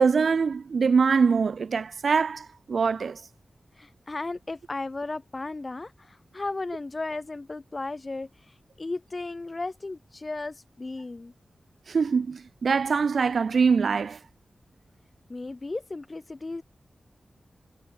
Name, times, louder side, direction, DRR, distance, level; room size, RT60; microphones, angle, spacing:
voice 1, 0.0-3.2 11.9-14.2, right 5 dB, 70° right, 0.7 m, -23 dB
voice 2, 3.8-11.3 15.3-16.6, left 3 dB, 30° left, 3.9 m, -35 dB
wide cardioid pair, 135°, 0 cm